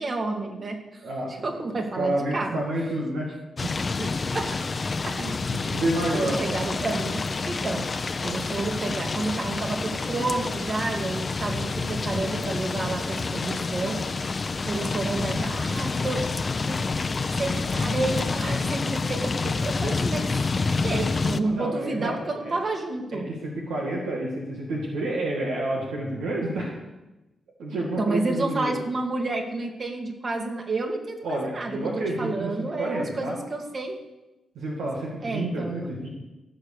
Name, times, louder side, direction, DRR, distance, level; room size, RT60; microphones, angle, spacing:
voice 1, 0.0-1.0 1.4-2.6 4.0-4.6 5.0-5.3 6.1-7.8 8.2-14.0 14.6-16.3 16.7-16.8 17.4-20.4 20.7-23.3 28.0-31.8 32.2-34.0 35.2-35.9, right 2 dB, 50° right, 2 dB, 2.5 m, -30 dB
voice 2, 1.0-1.6 1.9-3.3 3.6-3.7 5.2-6.4 21.4-22.6 23.1-26.7 27.6-28.8 31.2-33.4 34.6-36.1, right 1 dB, 90° right, -3 dB, 2.2 m, -29 dB
sound 1, 3.6-21.4, left 4 dB, 45° left, 0.7 m, -28 dB
16.0 x 6.6 x 6.7 m, 1.0 s
cardioid pair, 60°, 0 cm